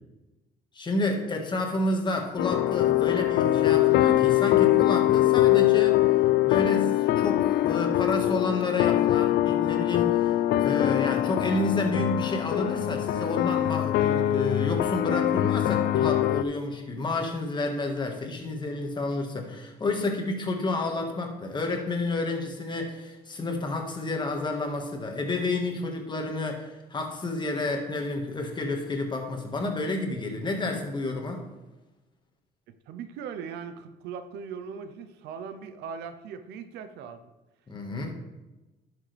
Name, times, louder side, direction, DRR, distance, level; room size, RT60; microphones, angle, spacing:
voice 1, 0.7-6.0 6.4-31.4 37.7-38.1, left 2 dB, 25° left, 2 dB, 1.7 m, -30 dB
sound 1, 2.4-16.4, left 14 dB, 75° left, 0.4 m, -23 dB
voice 2, 32.9-37.2 37.9-38.1, right 6 dB, 85° right, 10 dB, 0.7 m, -39 dB
11.0 x 6.4 x 3.4 m, 1.1 s
cardioid pair, 110°, 17 cm